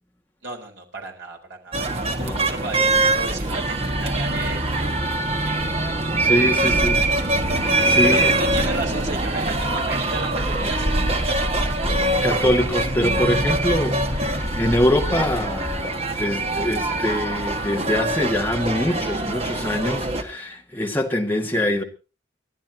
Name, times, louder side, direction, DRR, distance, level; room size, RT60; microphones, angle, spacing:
voice 1, 0.4-5.7 6.4-6.8 8.0-11.8, right 3 dB, 65° right, 4.1 m, -34 dB
sound 1, 1.7-20.2, right 2 dB, 30° right, 1.5 m, -23 dB
sound 2, 2.9-15.8, equal, 85° left, 2.7 m, -32 dB
voice 2, 6.2-7.1 7.6-8.3 12.2-21.8, left 1 dB, 10° left, 1.9 m, -24 dB
30.0 x 11.5 x 2.8 m
head